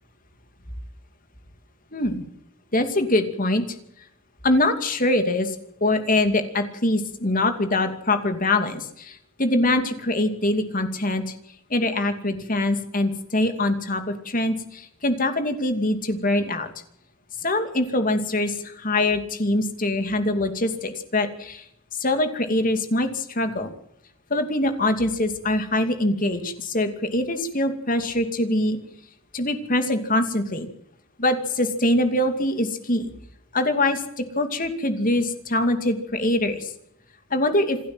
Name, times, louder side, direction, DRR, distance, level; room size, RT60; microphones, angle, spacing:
voice 1, 1.9-2.2 2.7-3.6 4.4-5.6 5.8-11.3 11.7-16.7 17.4-21.6 22.0-23.7 24.3-28.8 29.3-30.7 31.2-33.1 33.5-36.7 37.3-37.8, left 1 dB, 40° left, 7 dB, 2.6 m, -23 dB
27.0 x 12.0 x 7.9 m, 0.76 s
head